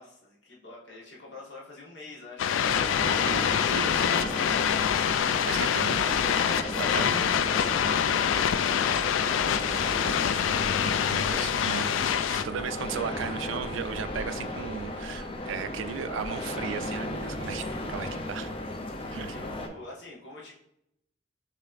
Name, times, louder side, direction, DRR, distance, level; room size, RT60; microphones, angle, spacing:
voice 1, 0.0-2.9 13.1-13.3 15.4-15.8 19.2-20.5, left 2 dB, 65° left, -4 dB, 1.4 m, -47 dB
sound 1, 2.4-12.4, left 8 dB, 85° left, 0.3 m, -25 dB
sound 2, 2.6-19.7, left 1 dB, 30° left, 0.5 m, -35 dB
voice 2, 3.0-4.6 5.1-6.2 6.6-7.2 11.0-18.5 19.1-19.4, right 7 dB, 85° right, 12 dB, 0.4 m, -36 dB
6.2 x 3.1 x 2.5 m, 0.77 s
head